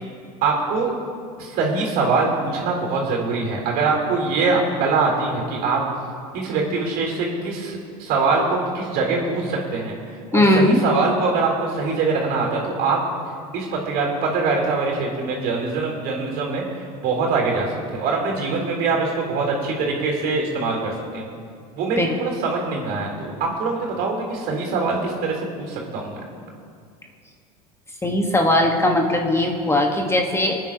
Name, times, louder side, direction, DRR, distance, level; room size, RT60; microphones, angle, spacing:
voice 1, 0.4-0.9 1.4-5.8 6.3-9.9 10.3-13.0 13.5-21.3 21.7-26.2, right 4 dB, 55° right, -1 dB, 3.9 m, -23 dB
voice 2, 10.3-10.8 22.0-22.1 28.0-30.6, left 1 dB, 15° left, 1 dB, 1.6 m, -19 dB
26.0 x 9.4 x 3.0 m, 2.3 s
hypercardioid pair, 80°, 19 cm